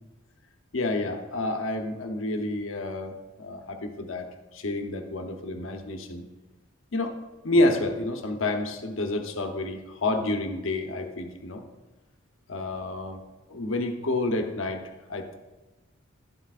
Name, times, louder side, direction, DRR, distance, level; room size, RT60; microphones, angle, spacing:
voice 1, 0.7-4.3 4.5-6.2 6.9-7.1 7.4-11.6 12.5-13.2 13.5-14.8 15.1-15.4, left 2 dB, 80° left, 5 dB, 0.9 m, -29 dB
11.5 x 7.7 x 2.5 m, 1.1 s
head